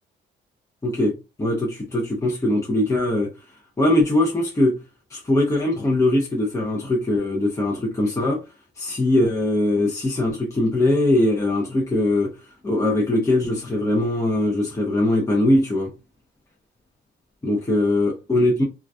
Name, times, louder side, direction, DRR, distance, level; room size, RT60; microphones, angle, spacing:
voice 1, 0.8-3.3 3.8-4.8 5.1-8.4 8.8-12.3 12.6-15.9 17.4-18.6, left 1 dB, 15° left, 0.6 m, -21 dB
2.3 x 2.2 x 2.5 m
cardioid pair, 90°, 20 cm